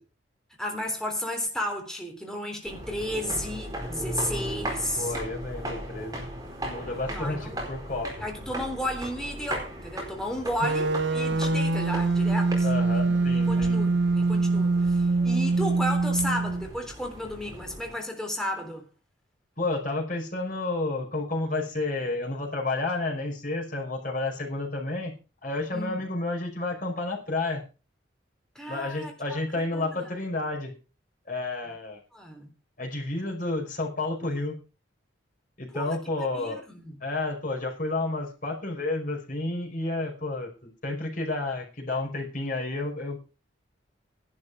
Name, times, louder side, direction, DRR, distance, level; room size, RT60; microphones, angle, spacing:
voice 1, 0.6-5.1 7.1-7.6 8.2-18.9 25.7-26.1 28.5-29.4 29.7-30.2 32.1-32.5 35.7-36.0 36.3-37.0, left 1 dB, 5° left, 3.4 m, -33 dB
sound 1, 2.6-17.9, right 1 dB, 20° right, 4.5 m, -38 dB
voice 2, 5.0-6.3 6.6-8.1 12.6-13.8 19.6-25.1 25.4-27.6 28.7-30.7 31.3-32.0 32.8-34.5 35.6-36.6 37.0-43.2, left 2 dB, 45° left, 5.4 m, -31 dB
sound 2, 10.6-16.7, right 3 dB, 70° right, 0.8 m, -24 dB
12.0 x 11.5 x 5.0 m
head